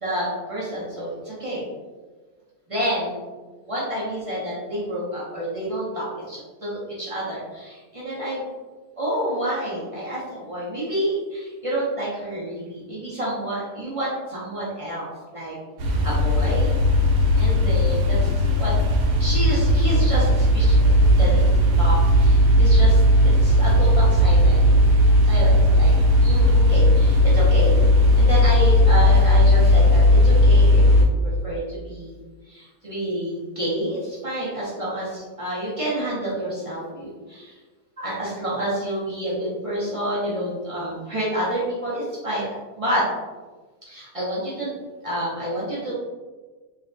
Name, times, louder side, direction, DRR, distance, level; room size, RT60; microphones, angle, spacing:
voice 1, 0.0-1.6 2.7-3.3 3.6-8.5 9.0-15.6 15.8-16.7 17.3-18.7 19.2-21.5 21.8-24.6 25.2-25.9 26.2-27.8 28.2-32.2 32.4-37.6 38.0-43.0 43.9-44.8 45.0-45.9, right 1 dB, 50° right, -8 dB, 0.4 m, -29 dB
sound 1, 15.8-31.1, left 1 dB, 75° right, 1.0 m, -16 dB
3.2 x 2.7 x 2.5 m, 1.3 s
omnidirectional pair, 1.6 m